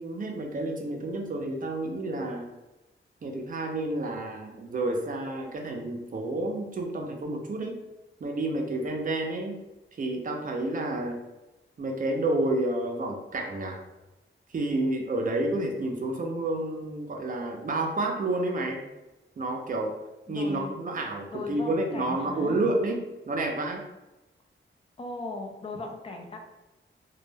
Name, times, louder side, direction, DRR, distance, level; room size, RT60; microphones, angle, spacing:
voice 1, 0.0-2.5 3.2-7.8 8.2-9.6 10.0-11.2 11.8-13.8 14.5-18.8 19.4-20.0 20.3-23.8, right 2 dB, 40° right, 2 dB, 0.4 m, -30 dB
voice 2, 20.3-20.7 21.3-22.6 25.0-26.4, left 3 dB, 30° left, 2 dB, 0.3 m, -37 dB
2.2 x 2.1 x 3.2 m, 1.0 s
wide cardioid pair, 170°, 21 cm